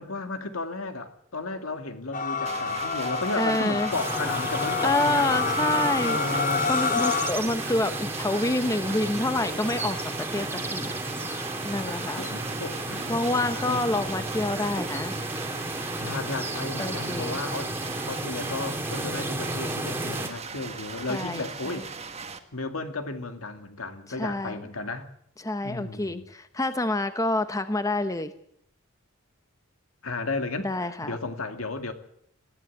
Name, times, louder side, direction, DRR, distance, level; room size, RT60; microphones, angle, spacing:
voice 1, 0.0-5.6 6.0-6.7 11.1-13.9 16.0-17.7 18.1-22.0 22.5-25.1 25.6-26.3 30.0-31.9, left 3 dB, 75° left, 2.3 m, -34 dB
sound 1, 2.1-7.3, left 4 dB, 40° left, 1.2 m, -28 dB
sound 2, 2.5-22.4, right 5 dB, 30° right, 1.6 m, -39 dB
voice 2, 3.3-3.9 4.8-6.2 6.7-10.5 10.7-10.9 11.6-12.3 13.1-15.1 16.8-17.4 21.1-21.5 24.2-24.6 25.4-28.3 30.6-31.2, left 2 dB, 15° left, 0.9 m, -27 dB
sound 3, 3.9-20.3, right 1 dB, 10° right, 2.1 m, -33 dB
20.0 x 15.5 x 8.5 m
head